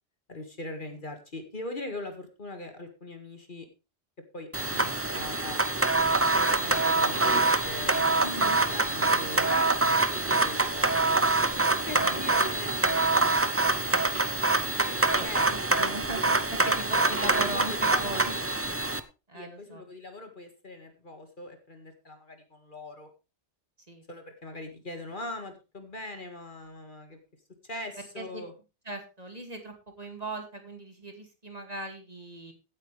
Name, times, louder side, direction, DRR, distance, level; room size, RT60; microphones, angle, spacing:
voice 1, 0.3-3.7 4.3-5.6 6.3-8.1 8.4-11.1 11.8-14.0 14.9-15.5 16.7-17.1 17.5-18.5 19.3-23.1 24.1-27.2 27.6-28.5, left 2 dB, 45° left, 6 dB, 2.1 m, -41 dB
sound 1, 4.5-19.0, right 2 dB, 15° right, 0.6 m, -25 dB
voice 2, 8.2-8.6 12.0-12.3 15.2-18.3 19.3-19.8 23.9-24.0 28.0-28.4 28.8-32.5, right 2 dB, 35° right, 4 dB, 2.5 m, -39 dB
16.5 x 8.8 x 3.3 m, 0.29 s
omnidirectional pair, 1.2 m